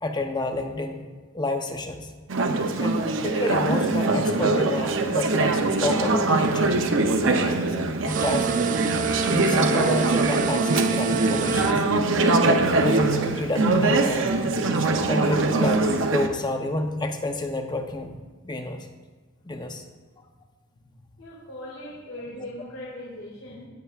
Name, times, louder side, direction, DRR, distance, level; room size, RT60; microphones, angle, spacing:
voice 1, 0.0-1.0 1.3-2.1 2.8-6.8 8.1-8.5 9.2-11.8 12.5-14.3 15.1-18.2 18.4-18.9 19.4-19.8 22.4-22.5, left 1 dB, 20° left, 5 dB, 0.7 m, -29 dB
Conversation / Chatter, 2.3-16.3, right 3 dB, 65° right, 0.7 m, -23 dB
sound 1, 8.1-11.8, right 7 dB, 40° right, 0.3 m, -28 dB
voice 2, 20.9-23.7, left 1 dB, 80° left, -6 dB, 2.4 m, -40 dB
17.5 x 6.8 x 2.4 m, 1.4 s
head